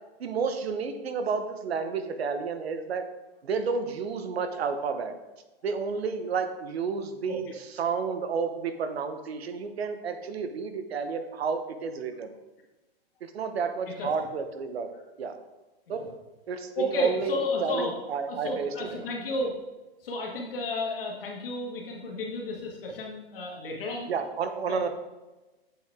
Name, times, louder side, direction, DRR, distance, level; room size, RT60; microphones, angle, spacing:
voice 1, 0.2-3.1 3.4-5.1 5.6-12.3 13.2-14.9 15.2-15.3 15.9-16.1 16.5-18.9 24.1-24.9, right 5 dB, 80° right, 8 dB, 0.9 m, -31 dB
voice 2, 16.8-17.9 18.3-19.5 20.0-24.1 24.7-24.9, left 2 dB, 65° left, -1 dB, 1.9 m, -32 dB
7.5 x 4.8 x 3.6 m, 1.1 s
hypercardioid pair, 165°, 31 cm